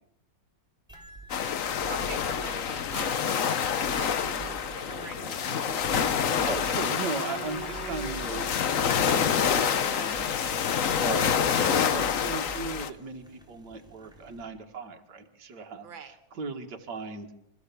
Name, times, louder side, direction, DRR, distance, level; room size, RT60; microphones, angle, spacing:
sound 1, 0.9-14.4, right 4 dB, ahead, 3.5 m, -47 dB
sound 2, 1.3-12.9, left 7 dB, 50° left, 1.1 m, -27 dB
voice 1, 1.9-5.7 15.8-16.1, right 6 dB, 80° right, 8 dB, 2.2 m, -44 dB
Engine / Sawing, 4.2-12.5, right 4 dB, 30° right, 3.5 m, -43 dB
voice 2, 6.2-8.5 9.0-10.6 11.0-17.3, right 4 dB, 60° right, 3 dB, 2.4 m, -37 dB
28.0 x 14.0 x 7.0 m, 0.85 s
omnidirectional pair, 2.1 m